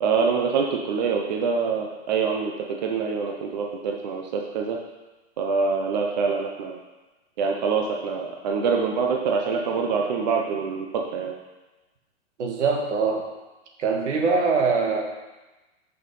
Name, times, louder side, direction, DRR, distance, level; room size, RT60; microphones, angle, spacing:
voice 1, 0.0-2.5 2.8-4.8 5.4-6.7 7.4-11.3, right 5 dB, 40° right, 1 dB, 0.7 m, -25 dB
voice 2, 12.4-13.2 13.8-15.0, right 4 dB, 80° right, 2 dB, 1.7 m, -23 dB
6.5 x 5.5 x 5.3 m, 1.1 s
hypercardioid pair, 175°, 35 cm